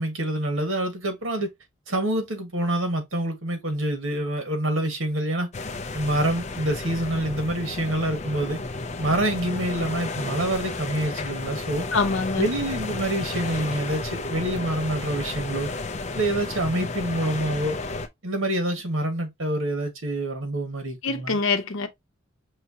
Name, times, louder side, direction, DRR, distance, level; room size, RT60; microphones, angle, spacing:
voice 1, 0.0-1.5 1.9-5.5 5.9-8.6 9.0-11.9 12.4-15.7 16.1-17.8 18.2-21.4, right 1 dB, 80° right, 1.5 m, -26 dB
sound 1, 5.5-18.1, left 3 dB, 35° left, 0.5 m, -32 dB
voice 2, 11.9-12.5 21.0-21.9, left 4 dB, 75° left, 0.8 m, -24 dB
5.6 x 2.9 x 2.7 m
head